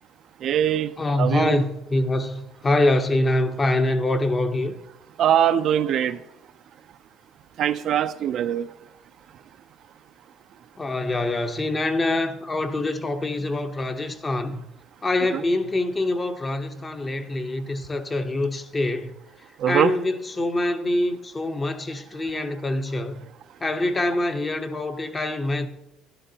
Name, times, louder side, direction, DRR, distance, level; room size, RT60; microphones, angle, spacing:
voice 1, 0.4-0.9 1.2-1.6 5.2-6.2 7.6-8.7 15.3-15.4 19.6-19.9, right 10 dB, 50° right, 0.4 m, -22 dB
voice 2, 1.0-4.8 10.8-14.6 15.0-19.1 19.7-23.2 23.6-25.7, left 2 dB, 20° left, 0.8 m, -25 dB
12.5 x 11.5 x 2.8 m
cardioid pair, 145°, 0 cm